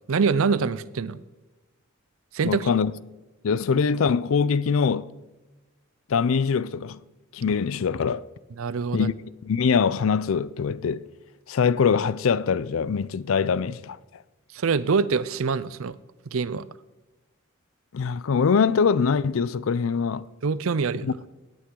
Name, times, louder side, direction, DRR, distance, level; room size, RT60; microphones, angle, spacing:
voice 1, 0.1-1.2 2.3-2.7 8.6-9.1 14.5-16.0 16.3-16.7 20.4-21.1, right 5 dB, 75° right, 0.5 m, -24 dB
voice 2, 2.4-3.0 3.4-5.1 6.1-7.0 7.3-8.2 8.9-9.1 9.4-11.1 11.5-14.0 17.9-20.3 21.0-21.1, left 6 dB, 70° left, 0.4 m, -23 dB
17.0 x 8.6 x 3.8 m
head